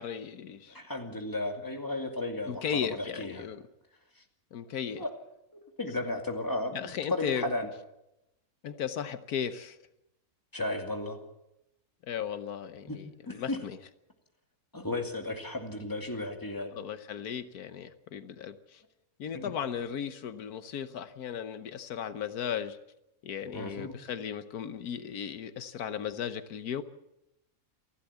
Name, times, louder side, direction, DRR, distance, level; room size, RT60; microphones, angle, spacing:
voice 1, 0.0-0.8 2.5-3.6 4.5-5.0 6.7-7.5 8.6-9.8 12.1-13.8 16.8-18.8 19.2-22.8 23.2-26.8, left 8 dB, 80° left, 11 dB, 1.5 m, -36 dB
voice 2, 0.7-3.5 5.0-5.1 5.5-7.7 10.5-11.2 12.9-13.0 13.3-13.6 14.7-16.8 19.3-19.4 23.5-23.9, left 2 dB, 15° left, 4 dB, 2.3 m, -34 dB
28.0 x 12.0 x 8.4 m, 0.87 s
omnidirectional pair, 1.6 m